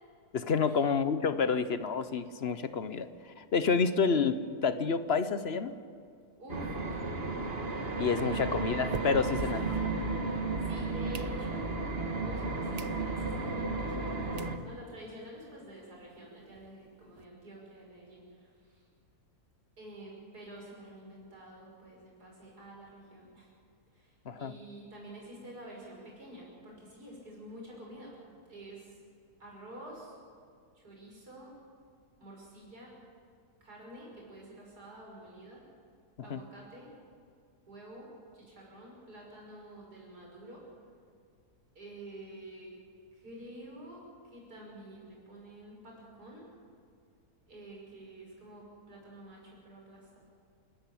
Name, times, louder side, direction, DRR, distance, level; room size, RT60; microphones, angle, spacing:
voice 1, 0.3-5.7 8.0-9.6 24.3-24.5 36.2-36.4, left 5 dB, 50° left, 12 dB, 1.0 m, -29 dB
voice 2, 6.4-7.5 9.3-9.8 10.6-11.7 12.2-18.9 19.8-23.5 23.9-29.0 29.4-30.2 30.7-31.5 32.2-32.9 33.6-35.6 36.2-36.9 37.7-40.6 41.7-42.7 43.1-46.5 47.5-50.2, right 1 dB, 90° right, -2 dB, 6.0 m, -49 dB
sound 1, 6.5-14.6, right 3 dB, 40° right, 1.7 m, -33 dB
sound 2, 6.5-10.5 10.9-11.8 12.3-12.4 12.7-13.0 13.4-13.5 14.1-14.2 14.4-14.6 15.0-15.1 15.3-15.4 15.7-15.8 16.1-17.2, right 6 dB, 60° right, 0.4 m, -46 dB
29.0 x 13.5 x 8.6 m, 2.2 s
omnidirectional pair, 1.6 m